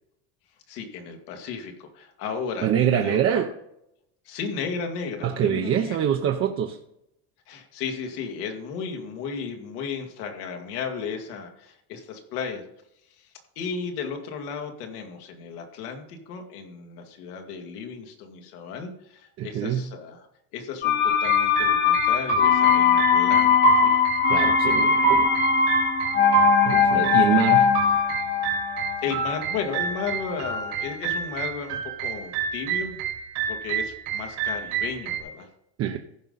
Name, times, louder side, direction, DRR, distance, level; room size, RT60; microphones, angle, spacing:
voice 1, 0.7-3.4 4.3-6.0 7.5-12.6 13.2-13.3 13.6-20.3 20.5-24.0 29.0-33.0 33.5-35.5, left 6 dB, 85° left, 4 dB, 2.1 m, -34 dB
voice 2, 2.6-3.5 5.2-6.8 19.4-19.9 24.3-25.3 26.6-27.8 35.8-36.0, right 9 dB, 30° right, 4 dB, 0.6 m, -24 dB
sound 1, 20.8-30.5 30.8-30.9, left 7 dB, 25° left, 0.6 m, -21 dB
sound 2, 21.1-35.2, right 6 dB, 80° right, 3.3 m, -27 dB
15.0 x 5.4 x 3.9 m, 0.79 s
cardioid pair, 150°, 45 cm